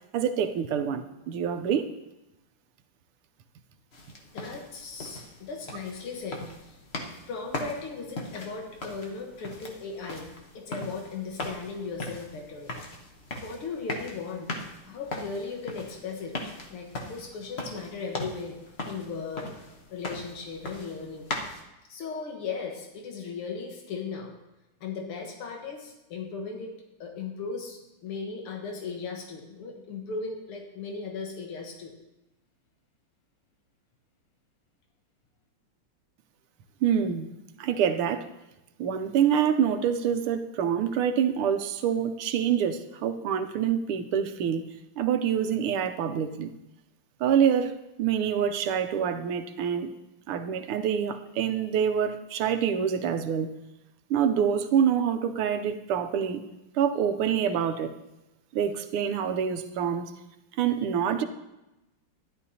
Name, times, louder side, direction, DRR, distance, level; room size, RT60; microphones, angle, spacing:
voice 1, 0.1-1.9 36.8-37.3 37.6-38.2 38.8-44.6 45.0-46.5 47.2-47.7 48.0-49.9 50.3-53.5 54.1-56.4 56.7-57.9 58.5-60.1 60.6-61.2, right 8 dB, 85° right, 8 dB, 1.6 m, -26 dB
sound 1, 3.9-21.6, left 2 dB, 40° left, 0.9 m, -39 dB
voice 2, 4.3-6.8 7.3-12.7 13.4-14.5 14.8-16.4 16.7-18.6 18.9-19.5 19.9-21.3 21.9-24.3 24.8-31.9, left 4 dB, 90° left, 2 dB, 2.2 m, -37 dB
12.5 x 11.0 x 2.8 m, 0.97 s
omnidirectional pair, 2.4 m